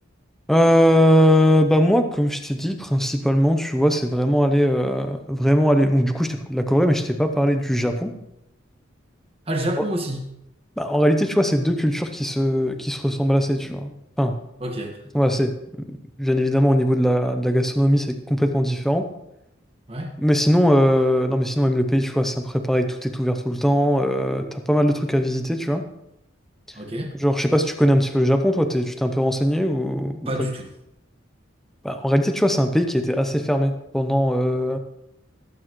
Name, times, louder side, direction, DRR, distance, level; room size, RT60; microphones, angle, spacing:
voice 1, 0.5-8.1 10.8-13.9 14.2-14.3 15.1-15.5 16.2-19.1 20.2-25.8 27.2-30.3 31.8-34.8, equal, ahead, 6 dB, 0.7 m, -20 dB
voice 2, 9.5-10.2 14.6-15.0 19.9-20.1 26.7-27.1 30.2-30.7, right 1 dB, 30° right, 3 dB, 1.6 m, -28 dB
18.0 x 8.8 x 3.1 m, 0.85 s
head